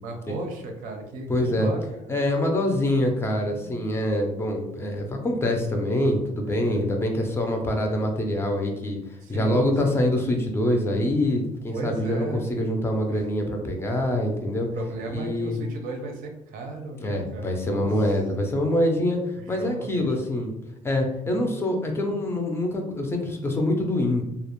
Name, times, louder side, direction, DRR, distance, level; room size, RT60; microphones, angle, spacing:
voice 1, 0.0-2.2 3.6-3.9 6.5-6.8 9.2-10.0 11.7-12.5 14.7-17.9 19.4-20.4, right 2 dB, 85° right, 3 dB, 0.5 m, -35 dB
voice 2, 1.3-1.7 2.1-14.7 15.1-15.6 17.0-20.5 20.8-24.2, left 1 dB, 20° left, 2 dB, 0.3 m, -25 dB
2.3 x 2.0 x 2.9 m, 0.85 s
cardioid pair, 150°, 14 cm